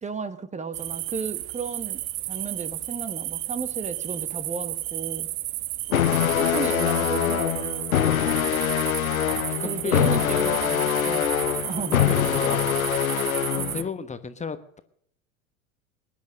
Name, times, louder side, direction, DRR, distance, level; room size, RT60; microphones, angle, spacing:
voice 1, 0.0-2.0 2.3-5.3 6.4-7.9 9.6-11.2 11.7-12.0 13.5-13.7, right 4 dB, 15° right, 13 dB, 1.2 m, -33 dB
sound 1, 0.7-13.8, right 16 dB, 45° right, 1.0 m, -33 dB
sound 2, 5.9-13.9, left 10 dB, 85° left, 0.9 m, -24 dB
voice 2, 9.2-10.7 12.0-12.7 13.7-14.8, left 5 dB, 15° left, 11 dB, 1.2 m, -34 dB
20.0 x 10.5 x 6.5 m, 0.68 s
figure-of-eight pair, 80°, 41 cm